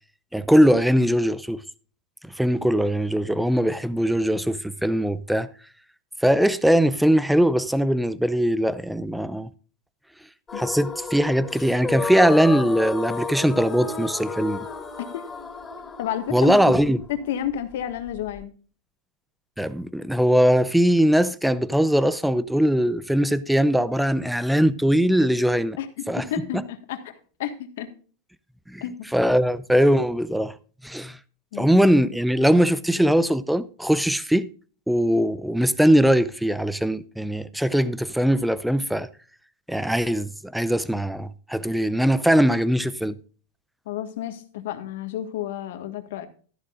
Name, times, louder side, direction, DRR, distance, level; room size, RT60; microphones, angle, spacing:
voice 1, 0.3-1.6 2.2-5.5 6.2-9.5 10.6-14.7 16.3-17.0 19.6-25.8 26.1-26.3 28.7-28.8 29.1-30.5 30.8-31.2 31.6-34.5 34.9-39.1 39.7-43.2, equal, ahead, 0.6 m, -21 dB
sound 1, 10.5-18.4, left 4 dB, 15° left, 4.4 m, -33 dB
voice 2, 16.0-16.6 17.1-18.5 25.8-27.9 28.8-28.9 31.5-31.8 43.8-46.3, left 10 dB, 75° left, 1.6 m, -31 dB
13.5 x 11.0 x 2.5 m
supercardioid pair, 125°, 0 cm